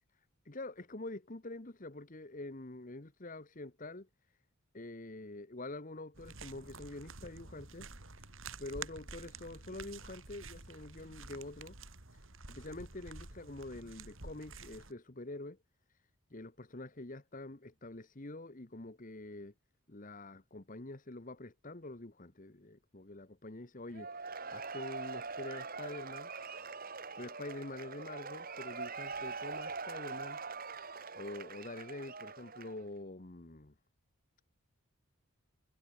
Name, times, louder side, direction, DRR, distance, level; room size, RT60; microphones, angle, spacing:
voice 1, 0.4-4.1 4.7-7.9 8.2-8.3 8.6-11.8 12.1-15.6 16.3-19.5 19.9-24.3 24.5-26.3 27.2-30.4 31.1-33.7, left 2 dB, 35° left, 1.3 m, -46 dB
sound 1, 6.1-14.9, right 4 dB, 65° right, 3.5 m, -49 dB
Cheering / Applause / Crowd, 23.9-32.9, right 4 dB, 40° right, 3.0 m, -43 dB
head